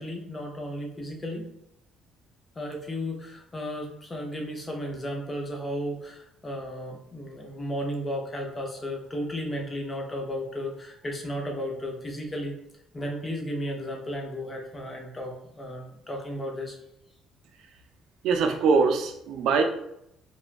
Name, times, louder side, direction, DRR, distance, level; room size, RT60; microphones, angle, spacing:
voice 1, 0.0-1.5 2.6-12.5 12.9-16.8, equal, 20° left, 0 dB, 0.6 m, -34 dB
voice 2, 18.2-19.6, right 4 dB, 70° right, 5 dB, 0.4 m, -22 dB
3.0 x 2.3 x 2.4 m, 0.78 s
cardioid pair, 140°, 0 cm